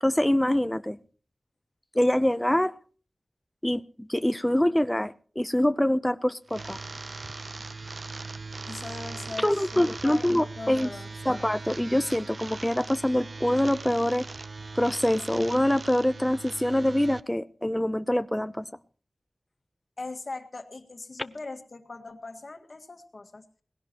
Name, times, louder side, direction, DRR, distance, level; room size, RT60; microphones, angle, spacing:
voice 1, 0.0-1.0 1.9-2.7 3.6-6.8 9.4-10.9 11.3-14.3 14.8-18.7, left 1 dB, 10° left, 0.6 m, -25 dB
sound 1, 6.5-17.2, right 3 dB, 55° right, 0.6 m, -40 dB
voice 2, 8.7-10.3 10.6-11.4 20.0-23.5, left 3 dB, 55° left, 1.8 m, -40 dB
19.5 x 16.5 x 2.9 m
wide cardioid pair, 60°, 0 cm